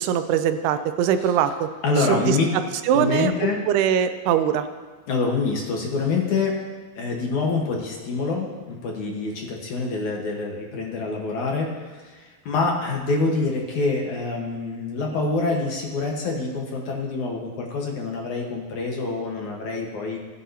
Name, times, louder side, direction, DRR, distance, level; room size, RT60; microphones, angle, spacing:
voice 1, 0.0-1.7 2.1-2.4 2.9-4.7, right 9 dB, 85° right, 9 dB, 2.7 m, -22 dB
voice 2, 1.8-2.5 2.9-3.6 5.1-6.6 7.0-20.2, left 3 dB, 60° left, -1 dB, 2.4 m, -26 dB
20.5 x 10.0 x 2.8 m, 1.4 s
omnidirectional pair, 4.6 m